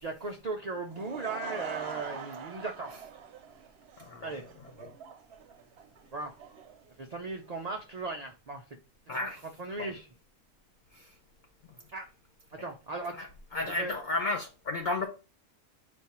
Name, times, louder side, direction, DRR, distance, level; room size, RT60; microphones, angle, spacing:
voice 1, 0.0-2.9 4.2-4.4 6.1-6.3 7.0-8.8 9.1-9.3 9.6-10.1 11.9-12.1 12.5-13.3 13.6-14.0, right 3 dB, 90° right, 0.3 m, -37 dB
Laughter / Crowd, 0.8-7.7, right 7 dB, 60° right, 0.7 m, -44 dB
voice 2, 4.0-4.3 4.8-4.9 9.1-9.4 9.8-9.9 10.9-11.1 13.1-15.1, left 2 dB, 55° left, 0.5 m, -33 dB
5.2 x 2.3 x 4.2 m
omnidirectional pair, 1.5 m